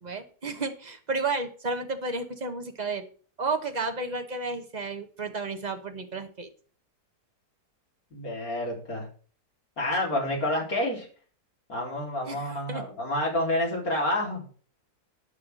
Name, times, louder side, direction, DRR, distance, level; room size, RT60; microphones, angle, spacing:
voice 1, 0.0-3.1 3.4-6.5 12.3-12.8, right 3 dB, 30° right, 6 dB, 1.3 m, -32 dB
voice 2, 8.1-9.1 9.8-11.1 11.7-14.4, left 1 dB, 60° left, -2 dB, 4.5 m, -28 dB
11.0 x 5.9 x 6.4 m, 0.41 s
omnidirectional pair, 1.7 m